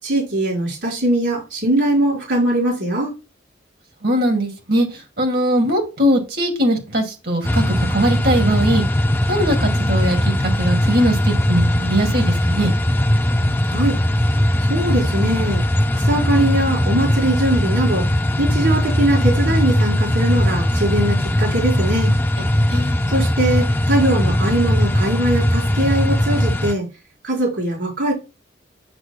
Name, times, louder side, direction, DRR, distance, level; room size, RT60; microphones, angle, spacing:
voice 1, 0.0-3.1 13.7-14.0 14.7-15.6 15.9-18.1 18.4-22.2 23.1-26.9 27.2-28.1, right 1 dB, 75° right, 4.9 m, -21 dB
voice 2, 4.0-8.8 9.3-12.7 22.7-23.0, right 1 dB, 60° right, 2.5 m, -20 dB
sound 1, 7.4-26.7, left 1 dB, 10° left, 0.5 m, -19 dB
9.9 x 6.2 x 2.3 m
head